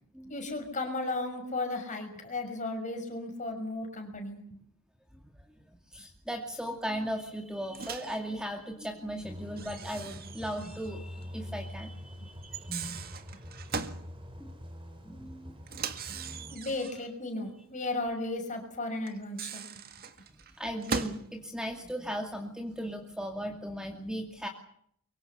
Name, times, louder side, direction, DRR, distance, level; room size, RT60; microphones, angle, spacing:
voice 1, 0.3-4.4 16.5-19.7, left 2 dB, 35° left, 5 dB, 6.1 m, -35 dB
voice 2, 5.9-13.0 14.4-14.5 15.0-16.5 20.6-24.5, equal, 5° right, 3 dB, 2.3 m, -37 dB
Microwave oven, 7.7-8.2 9.6-10.9 11.2-11.3 12.4-14.0 15.7-17.1 19.1-21.3, right 5 dB, 45° right, 1.7 m, -39 dB
sound 1, 9.2-16.6, left 1 dB, 25° right, 4.1 m, -45 dB
24.0 x 24.0 x 7.0 m, 0.67 s
head